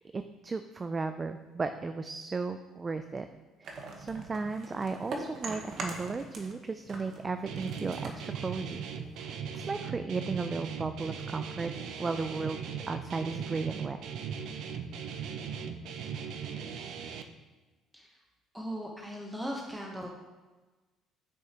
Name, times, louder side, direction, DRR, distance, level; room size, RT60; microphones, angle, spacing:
voice 1, 0.0-3.3 3.6-8.9 9.2-11.7 12.0-14.0, right 4 dB, 20° right, 9 dB, 0.3 m, -35 dB
sound 1, 3.6-6.6 6.9-9.2, right 3 dB, 50° right, 1.1 m, -42 dB
Guitar, 7.5-17.2, right 7 dB, 65° right, 0.6 m, -38 dB
voice 2, 18.5-20.1, equal, 5° right, -1 dB, 0.9 m, -38 dB
8.8 x 6.2 x 2.9 m, 1.3 s
cardioid pair, 135°, 0 cm